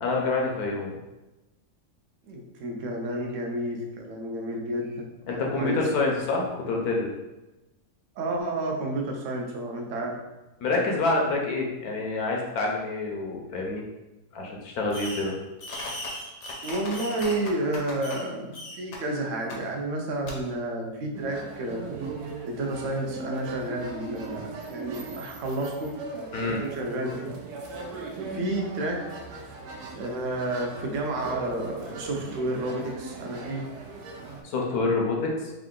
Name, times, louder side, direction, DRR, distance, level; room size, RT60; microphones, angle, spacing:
voice 1, 0.0-1.0 5.3-7.1 10.6-13.8 14.3-15.3 26.3-26.6 34.4-35.5, left 3 dB, 75° left, 0 dB, 1.1 m, -27 dB
voice 2, 2.3-5.1 5.3-5.9 8.2-10.2 16.6-22.0 22.4-25.9 26.4-27.3 28.3-29.5 29.9-33.6, right 1 dB, 60° right, 1 dB, 0.9 m, -31 dB
Fireworks, 14.9-15.3 15.6-18.3 18.5-19.0 19.5-19.6 20.3-20.4, left 1 dB, 55° left, 0.9 m, -37 dB
sound 1, 21.1-34.4, right 3 dB, 80° right, 1.2 m, -39 dB
3.6 x 2.3 x 3.6 m, 1.0 s
omnidirectional pair, 1.7 m